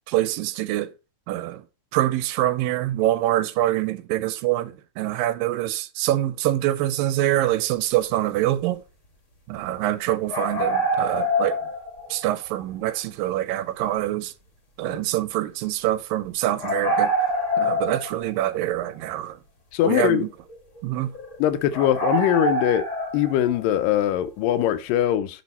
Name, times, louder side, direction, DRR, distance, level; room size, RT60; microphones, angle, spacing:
voice 1, 0.1-0.9 1.3-1.6 1.9-8.8 9.5-11.6 12.1-14.3 14.8-17.1 17.6-19.4 19.8-20.3 20.8-21.1, right 14 dB, 80° right, 2.3 m, -25 dB
sound 1, 10.3-12.3 12.6-12.7 16.6-18.5 18.9-19.0 20.0-20.1 20.5-20.6 21.1-21.4 21.7-23.6, right 1 dB, 30° left, 1.4 m, -25 dB
voice 2, 19.7-20.3 21.4-22.8 23.1-25.4, left 11 dB, 80° left, 2.3 m, -21 dB
6.3 x 6.2 x 4.1 m
omnidirectional pair, 4.1 m